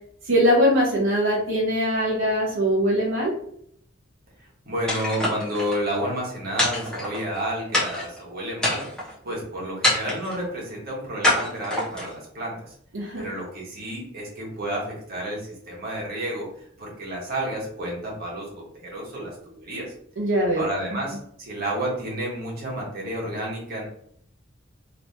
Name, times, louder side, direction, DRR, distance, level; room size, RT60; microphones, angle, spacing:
voice 1, 0.2-3.3 12.9-13.3 20.2-20.7, equal, 65° right, -4 dB, 0.7 m, -21 dB
voice 2, 4.6-12.7 13.1-16.5 16.8-19.9 20.6-23.8, right 1 dB, 45° right, -4 dB, 1.4 m, -31 dB
sound 1, 4.9-5.8 6.6-7.4 7.7-8.2 8.6-9.1 9.8-10.4 11.2-12.1, left 1 dB, 5° left, 1.0 m, -25 dB
3.2 x 3.0 x 2.8 m, 0.68 s
head